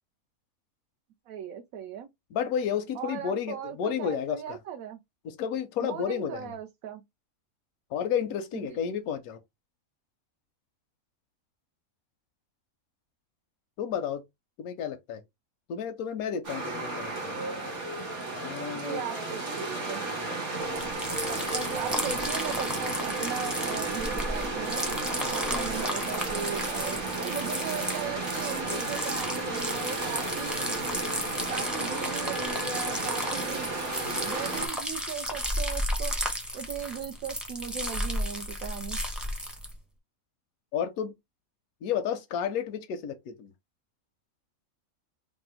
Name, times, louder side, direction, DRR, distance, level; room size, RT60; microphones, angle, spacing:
voice 1, 1.3-2.1 2.9-5.0 5.8-7.0 8.5-8.8 18.7-20.0 21.3-24.8 25.3-30.7 31.5-33.7 34.2-36.1 36.5-39.0, right 8 dB, 75° right, 1.0 m, -38 dB
voice 2, 2.3-4.6 5.2-6.5 7.9-9.4 13.8-14.2 14.6-15.2 15.7-17.3 18.3-19.0 40.7-41.1 41.8-43.5, left 8 dB, 85° left, 1.0 m, -31 dB
sound 1, 16.4-34.7, right 2 dB, 55° right, 1.5 m, -33 dB
sound 2, 20.7-39.7, equal, ahead, 0.5 m, -33 dB
3.4 x 2.1 x 4.2 m
omnidirectional pair, 1.5 m